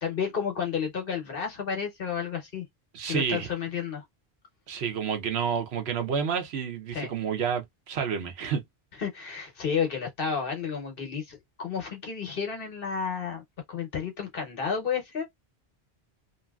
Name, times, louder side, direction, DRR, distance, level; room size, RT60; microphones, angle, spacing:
voice 1, 0.0-2.6 3.0-4.0 6.9-7.1 9.0-13.4 13.7-15.3, left 6 dB, 65° left, 1.1 m, -31 dB
voice 2, 2.9-3.5 4.7-8.6, right 7 dB, 90° right, 1.0 m, -29 dB
2.8 x 2.7 x 2.3 m
omnidirectional pair, 1.0 m